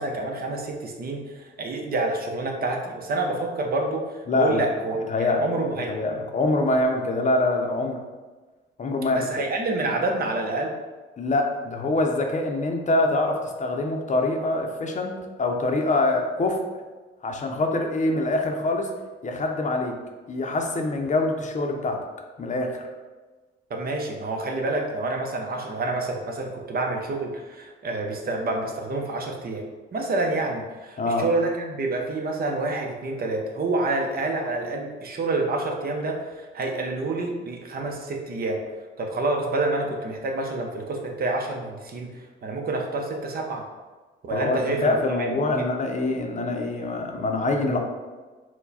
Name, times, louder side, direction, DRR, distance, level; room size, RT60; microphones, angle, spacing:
voice 1, 0.0-5.9 9.1-10.7 23.7-29.7 29.9-38.6 39.0-43.6 44.2-44.9 45.5-45.6, right 2 dB, 50° right, 2 dB, 0.8 m, -28 dB
voice 2, 4.3-4.7 4.9-5.4 5.9-8.0 8.8-9.3 11.2-15.1 15.4-16.6 17.2-18.9 19.2-20.0 20.3-22.0 22.4-22.8 31.0-31.2 44.3-47.8, left 2 dB, 40° left, 3 dB, 0.6 m, -24 dB
4.6 x 2.2 x 4.1 m, 1.3 s
cardioid pair, 90°, 20 cm